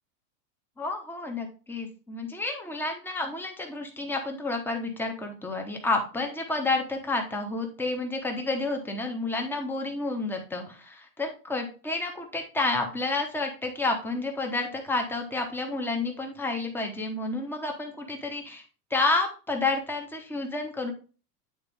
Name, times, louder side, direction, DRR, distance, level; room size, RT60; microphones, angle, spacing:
voice 1, 0.8-18.6 18.9-20.9, left 3 dB, 5° left, 3 dB, 0.9 m, -30 dB
9.0 x 3.9 x 3.4 m, 0.35 s
supercardioid pair, 145°, 49 cm